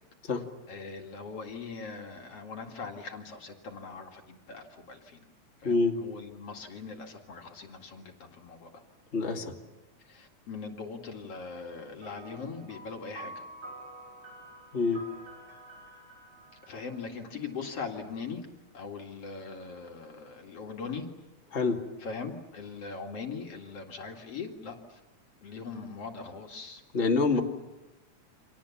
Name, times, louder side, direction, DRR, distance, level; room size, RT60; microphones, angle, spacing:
voice 1, 0.7-5.2 5.6-8.7 10.0-13.4 16.7-18.5 18.7-21.1 22.0-25.0 25.4-26.8 27.3-27.4, left 5 dB, 55° left, 2 dB, 3.0 m, -41 dB
voice 2, 5.6-6.0 9.1-9.5 14.7-15.0 21.5-21.8 26.9-27.4, left 3 dB, 25° left, 1 dB, 2.4 m, -26 dB
sound 1, 12.0-17.8, right 1 dB, 75° right, 7.5 m, -48 dB
29.5 x 26.5 x 7.2 m, 1.1 s
omnidirectional pair, 3.3 m